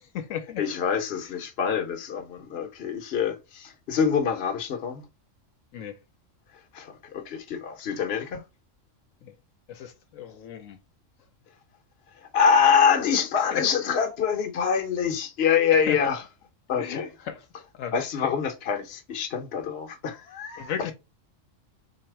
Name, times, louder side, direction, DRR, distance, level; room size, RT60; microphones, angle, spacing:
voice 1, 0.0-0.6 5.7-6.0 9.2-9.3 9.7-10.8 13.5-13.7 15.7-16.1 16.8-17.5 17.7-18.0 20.6-20.9, left 8 dB, 80° left, 1.1 m, -35 dB
voice 2, 0.6-5.0 6.7-8.4 12.3-16.2 16.7-17.1 17.9-20.9, left 7 dB, 55° left, 1.0 m, -25 dB
4.1 x 2.8 x 4.4 m
omnidirectional pair, 1.3 m